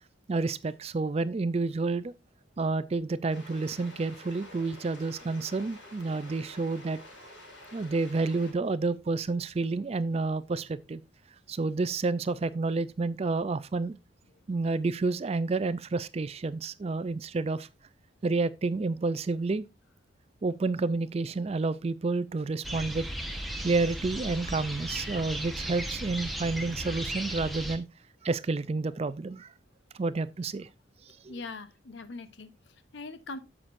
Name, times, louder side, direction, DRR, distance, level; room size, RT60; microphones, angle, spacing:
voice 1, 0.3-2.1 2.6-7.0 7.7-11.0 11.5-14.0 14.5-17.7 18.2-19.6 20.4-27.9 28.2-29.5 30.0-30.7 31.2-31.3, right 3 dB, 30° right, 0.4 m, -30 dB
sound 1, 3.3-8.5, left 1 dB, 85° left, 5.4 m, -49 dB
sound 2, 22.6-27.8, right 1 dB, ahead, 1.1 m, -36 dB
voice 2, 31.3-33.4, left 3 dB, 70° left, 0.9 m, -42 dB
9.6 x 7.4 x 2.5 m
head